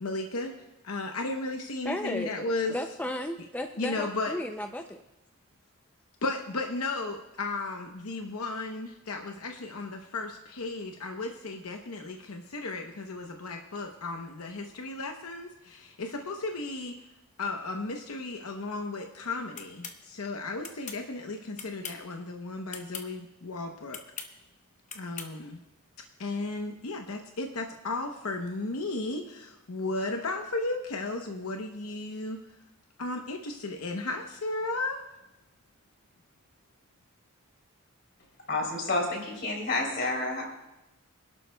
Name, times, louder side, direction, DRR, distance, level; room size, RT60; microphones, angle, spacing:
voice 1, 0.0-0.5 0.8-2.7 3.8-4.3 6.2-17.0 17.4-24.0 24.9-25.6 26.2-32.4 33.0-35.0, left 2 dB, 80° left, 3 dB, 0.9 m, -34 dB
voice 2, 1.8-5.0, left 1 dB, 5° left, 5 dB, 0.4 m, -34 dB
sound 1, 19.6-20.0 20.6-21.0 21.6-22.1 22.7-23.1 23.9-24.3 24.9-25.3, left 6 dB, 35° left, 0.9 m, -40 dB
voice 3, 38.5-40.4, left 2 dB, 50° left, 0 dB, 3.3 m, -29 dB
25.0 x 12.0 x 2.3 m, 0.95 s
head